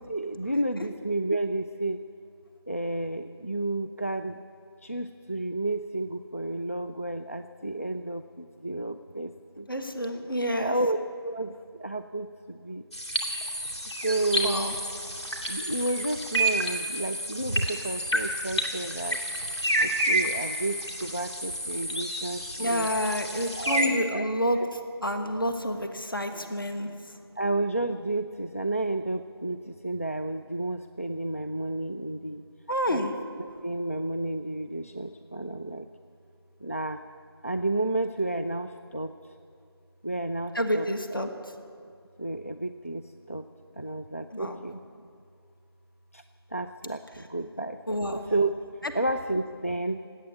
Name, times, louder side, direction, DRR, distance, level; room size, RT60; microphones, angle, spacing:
voice 1, 0.1-2.0 2.7-4.3 4.9-8.2 8.6-9.3 9.6-9.7 10.6-11.5 11.8-12.3 12.7-12.8 14.0-14.6 15.5-19.2 20.1-22.9 23.6-24.3 24.6-24.7 27.4-29.6 29.8-32.4 32.9-33.0 33.6-35.8 36.6-37.0 37.4-38.7 38.9-39.1 40.0-40.9 42.2-43.0 43.3-43.4 43.8-44.8 46.5-47.0 47.3-48.5 48.9-50.0, right 2 dB, 35° left, 8 dB, 0.3 m, -31 dB
voice 2, 9.7-10.7 14.4-14.7 22.6-24.6 25.0-26.9 32.7-33.1 40.5-41.3 44.3-44.6 47.9-48.2, equal, 55° left, 5 dB, 1.5 m, -28 dB
sound 1, 12.9-23.9, right 1 dB, 85° left, 2.5 m, -30 dB
18.5 x 8.7 x 8.3 m, 2.4 s
figure-of-eight pair, 175°, 14 cm